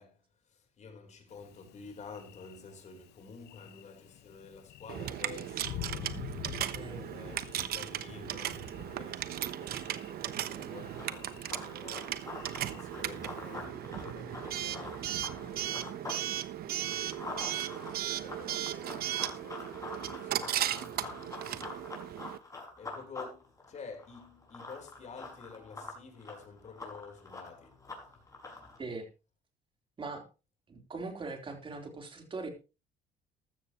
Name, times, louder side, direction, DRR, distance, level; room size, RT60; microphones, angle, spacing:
voice 1, 0.0-6.2 7.1-16.2 17.5-22.4 22.8-27.8, left 5 dB, 45° left, 4.1 m, -51 dB
Thunder, 1.3-13.7, left 14 dB, 75° left, 0.9 m, -48 dB
Coin (dropping) / Alarm, 4.9-22.4, right 12 dB, 65° right, 1.0 m, -36 dB
voice 2, 6.7-7.1 28.8-29.1 30.0-30.2 30.7-32.5, right 3 dB, 30° right, 3.7 m, -40 dB
Run, 10.7-16.2 16.6-28.8, left 3 dB, 20° left, 5.8 m, -46 dB
15.0 x 12.5 x 3.1 m
cardioid pair, 110°, 17 cm